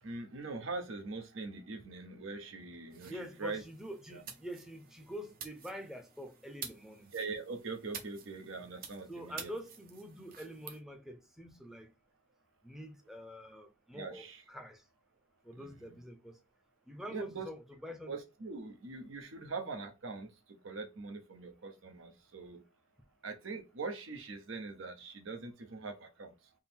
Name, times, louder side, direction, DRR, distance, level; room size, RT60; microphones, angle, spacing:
voice 1, 0.0-3.6 4.1-4.2 7.1-9.5 13.9-14.4 15.5-16.0 17.1-17.5 18.1-22.6 23.2-26.3, right 3 dB, 80° right, 0.8 m, -42 dB
sound 1, 2.9-10.8, right 6 dB, 45° right, 0.7 m, -50 dB
voice 2, 3.0-7.1 9.1-11.9 12.6-14.8 15.4-16.4 16.9-18.1, equal, ahead, 0.5 m, -46 dB
3.6 x 2.0 x 4.3 m
head